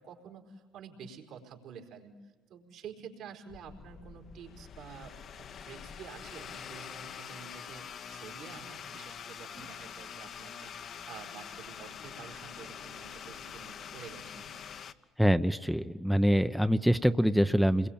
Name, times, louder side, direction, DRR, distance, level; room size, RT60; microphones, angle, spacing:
voice 1, 0.0-14.5, right 7 dB, 75° right, 2 dB, 4.5 m, -49 dB
sound 1, 3.5-14.9, left 7 dB, 60° left, 1.3 m, -45 dB
voice 2, 15.2-17.9, equal, ahead, 9 dB, 0.9 m, -25 dB
28.5 x 22.0 x 8.8 m, 1.4 s
supercardioid pair, 65°, 0 cm